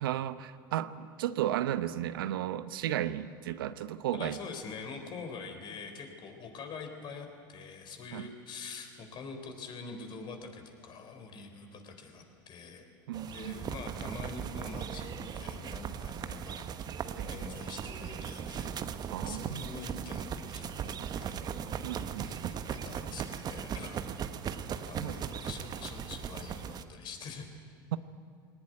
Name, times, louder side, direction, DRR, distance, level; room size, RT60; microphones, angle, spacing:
voice 1, 0.0-4.4 8.1-8.3 13.1-13.5 17.2-17.3 19.1-19.6 21.8-22.5 24.9-25.1, right 12 dB, 75° right, 13 dB, 0.8 m, -34 dB
voice 2, 4.1-12.9 13.3-16.6 17.3-18.8 19.2-21.5 22.3-24.3 24.8-27.5, left 4 dB, 40° left, 5 dB, 4.1 m, -45 dB
sound 1, 13.1-26.8, right 8 dB, 35° right, 1.2 m, -38 dB
21.0 x 19.0 x 9.6 m, 2.1 s
hypercardioid pair, 95°, 12 cm